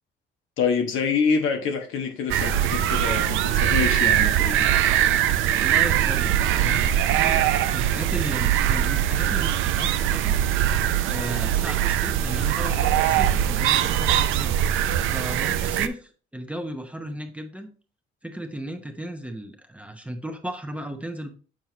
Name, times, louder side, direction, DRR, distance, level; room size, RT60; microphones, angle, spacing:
voice 1, 0.6-4.7, left 5 dB, 85° left, 1.3 m, -26 dB
sound 1, 2.3-15.9, right 11 dB, 85° right, 0.5 m, -22 dB
voice 2, 5.6-10.4 11.0-14.6 15.1-17.7 18.2-21.4, right 1 dB, 5° right, 0.8 m, -35 dB
7.4 x 4.4 x 2.9 m
cardioid pair, 90°, 20 cm